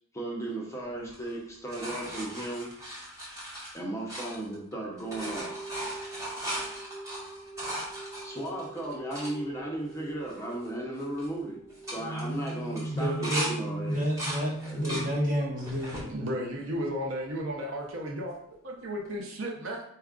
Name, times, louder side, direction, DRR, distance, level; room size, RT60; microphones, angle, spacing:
voice 1, 0.1-2.7 3.7-5.6 8.2-11.6 11.9-14.0 14.6-15.2, right 1 dB, 15° left, -3 dB, 0.6 m, -35 dB
sound 1, 1.1-4.7 5.0-9.3 9.9-10.0 10.2-10.7 11.0-11.3 11.7-13.5 13.9-15.1 15.6-16.1 16.7-17.4 19.1-19.2, right 1 dB, 15° right, 1.0 m, -38 dB
sound 2, 4.8-15.1, right 2 dB, 55° left, 0.9 m, -40 dB
voice 2, 12.9-13.5 13.9-16.0, equal, 40° right, -4 dB, 1.2 m, -30 dB
voice 3, 16.1-19.8, equal, 65° right, 0 dB, 0.7 m, -34 dB
4.3 x 2.3 x 3.6 m, 0.69 s
head